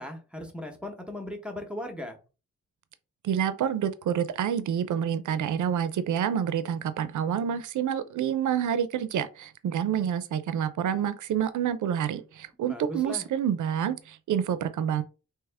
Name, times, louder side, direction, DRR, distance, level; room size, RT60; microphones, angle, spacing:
voice 1, 0.0-2.2 12.6-13.2, left 1 dB, 5° right, 0.9 m, -38 dB
voice 2, 3.2-15.0, right 9 dB, 85° right, 0.5 m, -28 dB
3.5 x 2.8 x 3.3 m
wide cardioid pair, 115°, 30 cm